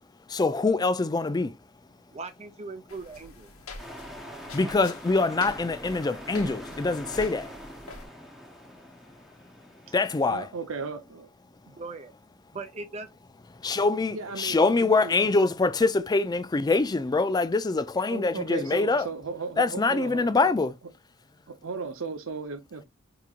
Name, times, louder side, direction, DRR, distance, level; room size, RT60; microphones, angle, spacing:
voice 1, 0.3-1.6 4.5-7.5 9.9-10.5 13.6-19.1 19.6-20.7, left 3 dB, 20° left, 0.3 m, -24 dB
voice 2, 2.1-3.5 11.8-12.1 12.5-13.1, right 3 dB, 30° right, 0.6 m, -39 dB
sound 1, 2.9-8.1, left 3 dB, 80° left, 1.0 m, -45 dB
sound 2, 3.8-10.4, equal, ahead, 0.8 m, -44 dB
voice 3, 10.3-11.3 11.7-11.8 14.1-15.1 18.1-20.3 21.5-22.8, right 4 dB, 70° right, 0.7 m, -36 dB
4.9 x 2.9 x 2.4 m
head